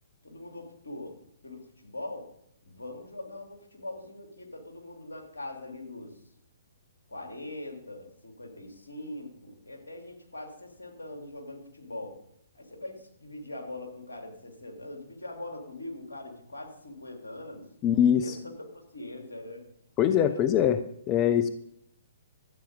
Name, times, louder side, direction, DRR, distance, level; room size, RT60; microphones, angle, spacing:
voice 1, 0.2-1.2 1.4-2.3 2.6-6.1 7.1-12.1 12.5-17.7 18.2-19.6 20.1-20.4, left 1 dB, 75° left, 2 dB, 3.0 m, -42 dB
voice 2, 17.8-18.4 20.0-20.8 21.1-21.5, left 9 dB, 25° left, 11 dB, 0.6 m, -23 dB
12.5 x 8.6 x 5.3 m, 0.72 s
figure-of-eight pair, 125°, 0 cm